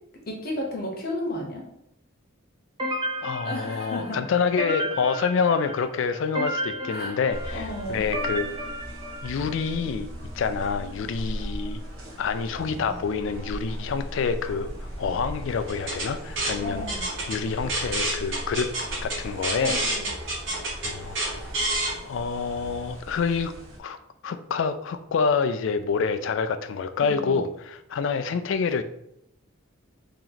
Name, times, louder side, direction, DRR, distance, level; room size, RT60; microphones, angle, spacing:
voice 1, 0.3-1.6 3.4-4.2 6.9-7.2 7.5-8.0 12.5-12.9 16.6-17.1 19.6-20.1 27.0-27.4, left 1 dB, 45° left, 0 dB, 0.9 m, -33 dB
sound 1, 2.8-9.7, equal, 20° right, 0.7 m, -33 dB
voice 2, 3.2-8.7 9.2-10.1 10.3-11.8 12.2-14.7 15.0-16.8 17.3-18.7 19.0-19.8 20.8-21.5 22.0-23.5 23.8-24.0 24.2-28.8, left 5 dB, 60° left, 9 dB, 0.3 m, -27 dB
sound 2, 7.3-23.8, equal, 85° right, 0.9 m, -38 dB
sound 3, 15.7-21.9, right 2 dB, 60° right, 1.2 m, -29 dB
3.0 x 2.8 x 3.9 m, 0.78 s
head